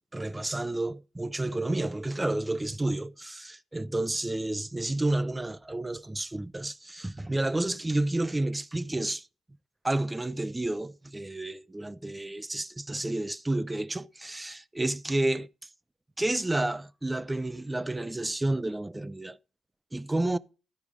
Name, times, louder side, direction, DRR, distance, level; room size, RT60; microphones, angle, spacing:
voice 1, 0.1-9.3 9.8-15.5 16.2-19.4 19.9-20.4, right 2 dB, 15° right, 0.4 m, -30 dB
12.5 x 4.8 x 5.0 m
cardioid pair, 85°, 0 cm